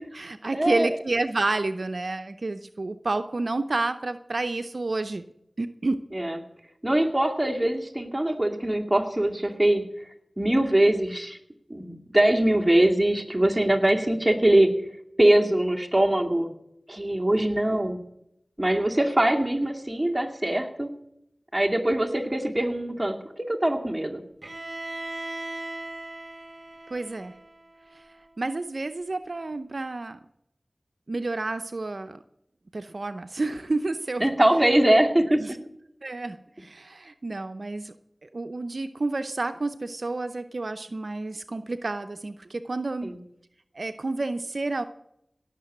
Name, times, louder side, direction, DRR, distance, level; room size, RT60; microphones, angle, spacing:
voice 1, 0.0-5.2 5.6-6.0 26.9-27.4 28.4-30.2 31.1-32.2 32.7-34.3 35.3-35.6 36.0-37.9 38.2-43.1 43.7-44.8, right 2 dB, 70° right, 9 dB, 0.7 m, -30 dB
voice 2, 0.5-0.9 6.1-6.4 6.8-9.8 10.4-11.4 11.7-14.7 15.2-16.5 16.9-18.0 18.6-20.9 21.5-24.2 34.2-35.4 43.0-43.2, right 1 dB, 15° right, 2 dB, 2.4 m, -22 dB
Bowed string instrument, 24.4-28.3, right 2 dB, 50° right, 1.4 m, -38 dB
17.5 x 6.8 x 9.8 m, 0.79 s
wide cardioid pair, 40°, 0 cm